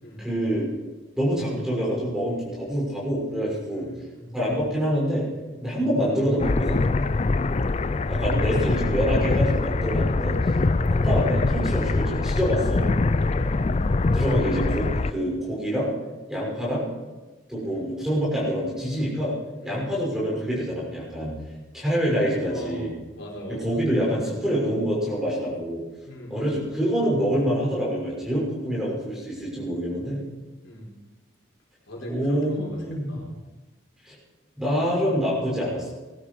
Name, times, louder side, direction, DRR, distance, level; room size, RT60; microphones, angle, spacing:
voice 1, 0.2-0.7 1.2-3.9 4.3-5.3 5.6-6.8 8.1-10.5 10.9-13.0 14.1-15.9 16.3-16.9 17.5-19.4 19.6-21.3 21.7-22.9 23.5-25.8 26.3-30.2 32.1-33.2 34.0-34.1 34.6-35.9, equal, ahead, -5 dB, 6.3 m, -26 dB
voice 2, 3.7-4.3 7.1-7.4 10.6-10.9 13.2-13.8 16.4-16.6 17.6-17.9 19.6-19.8 22.5-22.8 23.1-23.8 26.0-26.5 30.6-30.9 31.9-33.3, equal, 75° left, -2 dB, 4.5 m, -40 dB
sound 1, 6.4-15.1, left 3 dB, 35° left, 0.4 m, -23 dB
20.0 x 12.5 x 4.8 m, 1.2 s
head